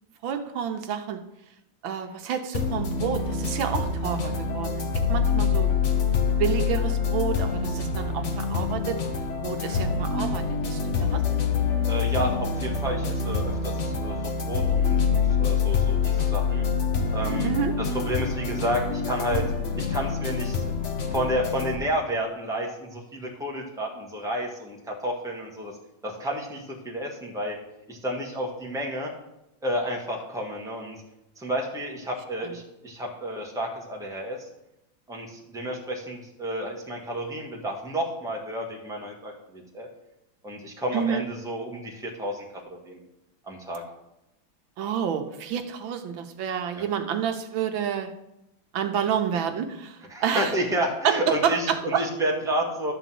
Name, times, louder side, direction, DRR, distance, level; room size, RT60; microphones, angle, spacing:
voice 1, 0.2-1.2 1.8-4.8 5.1-5.7 6.4-9.0 9.4-11.2 17.4-17.7 40.9-41.2 44.8-48.1 48.7-50.5 51.0-52.0, right 8 dB, 85° right, 7 dB, 1.6 m, -29 dB
sound 1, 2.5-21.8, left 5 dB, 50° left, 1.0 m, -26 dB
voice 2, 11.9-16.6 17.1-17.5 17.8-19.5 19.8-20.6 21.1-25.7 26.0-27.6 27.9-29.1 29.6-31.0 31.4-34.5 35.1-39.9 40.4-43.0 43.5-43.8 46.7-46.8 50.1-52.9, equal, ahead, -1 dB, 1.3 m, -31 dB
11.5 x 4.0 x 7.6 m, 0.89 s
omnidirectional pair, 2.1 m